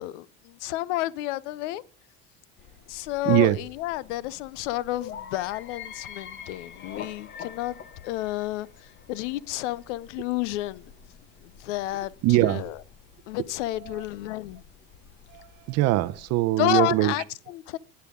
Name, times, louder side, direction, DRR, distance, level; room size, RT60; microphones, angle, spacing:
voice 1, 0.0-1.8 2.9-7.8 8.0-8.7 9.1-10.9 11.6-12.1 12.4-12.7 13.3-14.6 16.6-17.8, left 16 dB, 75° left, 0.7 m, -30 dB
sound 1, 2.6-16.3, left 7 dB, 30° left, 1.0 m, -47 dB
voice 2, 3.2-3.6 12.2-12.7 13.8-14.0 15.3-17.1, right 17 dB, 45° right, 0.7 m, -22 dB
11.0 x 9.7 x 3.7 m
supercardioid pair, 140°, 36 cm